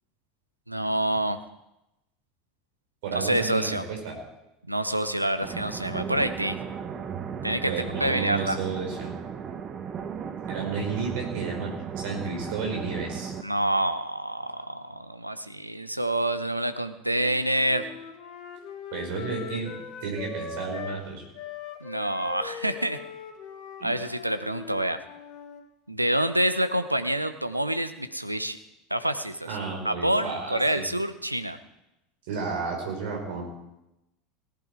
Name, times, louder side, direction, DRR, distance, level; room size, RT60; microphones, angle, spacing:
voice 1, 0.7-1.4 3.1-3.8 4.7-6.6 7.4-7.7 8.0-8.6 13.4-17.8 21.8-23.0 23.8-25.0 25.9-28.6 28.9-29.5 29.8-31.6, right 1 dB, 90° right, 10 dB, 0.8 m, -27 dB
voice 2, 3.0-4.2 7.7-9.2 10.5-13.3 18.9-19.7 20.0-21.2 23.8-23.9 29.5-30.8 32.3-33.4, right 5 dB, 60° right, 0 dB, 5.0 m, -32 dB
sound 1, 5.4-13.4, right 7 dB, 35° right, 1.2 m, -35 dB
Wind instrument woodwind instrument, 17.2-21.0 21.3-25.6, left 5 dB, 50° left, 2.0 m, -40 dB
18.0 x 10.5 x 4.8 m, 0.90 s
figure-of-eight pair, 75°, 0 cm